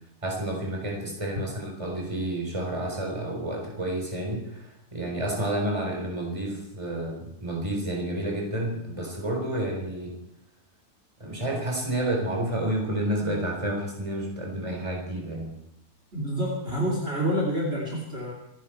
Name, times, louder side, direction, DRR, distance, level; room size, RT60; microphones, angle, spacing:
voice 1, 0.2-4.7 4.9-10.1 11.2-15.5, right 1 dB, 20° right, 0 dB, 4.1 m, -30 dB
voice 2, 16.1-18.3, equal, 40° right, -2 dB, 3.2 m, -28 dB
26.0 x 11.0 x 4.4 m, 0.81 s
omnidirectional pair, 1.6 m